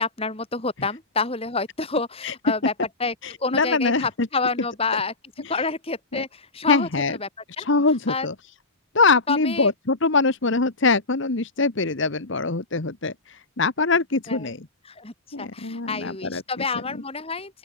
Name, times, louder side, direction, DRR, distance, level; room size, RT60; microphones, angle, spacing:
voice 1, 0.0-2.7 3.0-3.1 3.4-5.1 5.5-7.3 7.6-7.7 8.1-8.3 9.3-9.7 14.3-14.5 14.9-17.6, left 4 dB, 25° left, 2.2 m, -28 dB
voice 2, 3.2-4.3 6.1-6.2 6.7-7.2 7.6-8.3 8.9-14.7 15.3-16.4, left 3 dB, 55° left, 1.2 m, -23 dB
open air
head